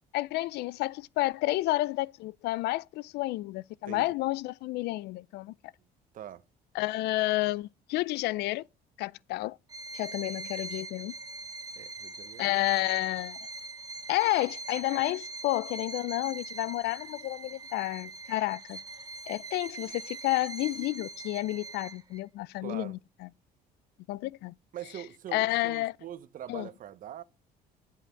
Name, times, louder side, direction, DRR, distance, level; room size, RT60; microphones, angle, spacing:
voice 1, 0.1-5.5 6.7-8.7 9.0-9.6 9.9-11.1 12.4-13.4 14.1-18.8 19.3-23.0 24.1-24.5 25.3-25.9 26.5-26.7, left 18 dB, 80° left, 0.4 m, -30 dB
voice 2, 3.9-4.2 6.1-6.4 11.8-12.6 22.6-23.0 24.7-27.2, right 11 dB, 55° right, 0.9 m, -43 dB
Bowed string instrument, 9.7-22.2, right 3 dB, 20° right, 0.9 m, -42 dB
10.5 x 5.7 x 5.8 m
cardioid pair, 110°, 17 cm